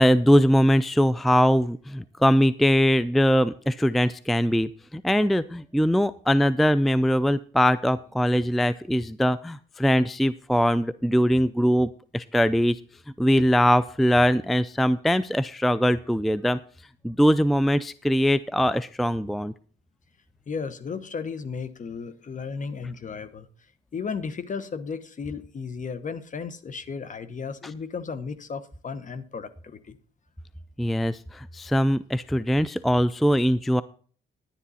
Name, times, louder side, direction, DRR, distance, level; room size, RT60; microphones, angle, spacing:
voice 1, 0.0-12.8 13.2-16.6 17.0-19.5 30.8-33.8, equal, ahead, 0.4 m, -21 dB
voice 2, 20.5-23.5 23.9-30.0, left 5 dB, 40° left, 1.1 m, -34 dB
10.5 x 10.0 x 4.2 m
cardioid pair, 90°, 20 cm